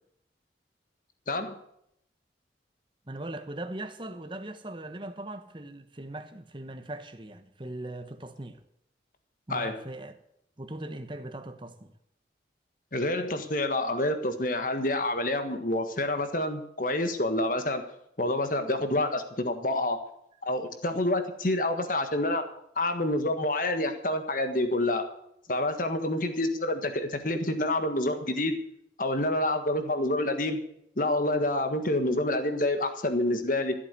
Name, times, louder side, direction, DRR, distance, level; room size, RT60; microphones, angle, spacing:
voice 1, 3.1-8.6 9.5-10.2 10.6-11.9, right 1 dB, 25° right, 1.1 m, -39 dB
voice 2, 12.9-17.8 18.2-20.0 20.4-22.4 22.7-25.1 25.5-28.6 29.0-30.6 31.0-33.7, left 1 dB, 45° left, 1.6 m, -28 dB
14.0 x 8.4 x 8.2 m
head